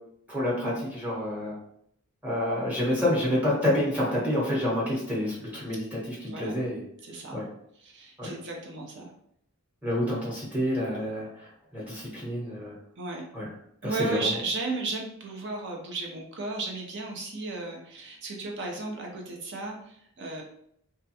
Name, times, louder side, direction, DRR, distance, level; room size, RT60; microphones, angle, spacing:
voice 1, 0.3-1.5 2.2-6.8 7.3-7.4 8.2-8.3 9.8-11.3 11.7-12.7 13.3-13.5 13.8-14.3, left 1 dB, 5° right, -6 dB, 0.9 m, -28 dB
voice 2, 6.3-6.6 7.0-7.3 7.8-9.1 13.0-13.2 13.8-20.4, right 3 dB, 55° right, 1 dB, 0.5 m, -34 dB
2.3 x 2.2 x 2.7 m, 0.70 s
head